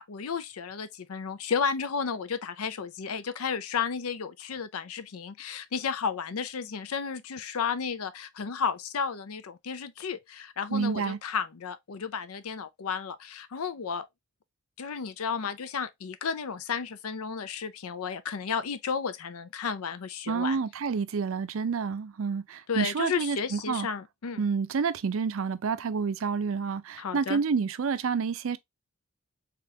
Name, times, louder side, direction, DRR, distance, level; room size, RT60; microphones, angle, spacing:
voice 1, 0.0-14.1 14.8-20.6 22.7-24.4 27.0-27.4, left 6 dB, 85° left, 0.5 m, -33 dB
voice 2, 10.7-11.2 20.3-23.9 24.4-28.6, right 5 dB, 70° right, 0.4 m, -29 dB
3.7 x 3.5 x 2.7 m
head